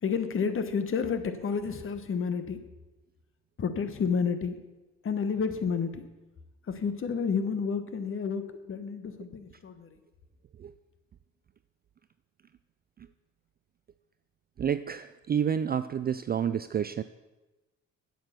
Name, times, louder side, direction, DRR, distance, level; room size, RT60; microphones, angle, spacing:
voice 1, 0.0-2.6 3.6-4.6 5.0-6.0 6.7-9.9, left 6 dB, 45° left, 11 dB, 1.1 m, -30 dB
voice 2, 14.6-17.0, right 8 dB, 30° right, 12 dB, 0.4 m, -29 dB
8.7 x 7.9 x 6.7 m, 1.1 s
cardioid pair, 90°, 30 cm